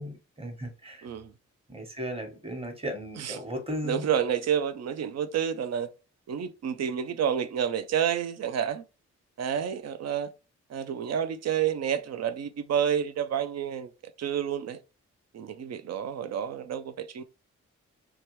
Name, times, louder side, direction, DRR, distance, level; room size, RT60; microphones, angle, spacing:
voice 1, 0.0-1.1 1.7-4.1, equal, 20° right, 1.2 m, -36 dB
voice 2, 1.0-1.3 3.2-3.4 3.8-5.9 6.3-8.8 9.4-10.3 10.7-13.9 14.2-14.8 15.3-17.2, right 8 dB, 55° right, 0.5 m, -29 dB
2.8 x 2.3 x 3.1 m
supercardioid pair, 45°, 32 cm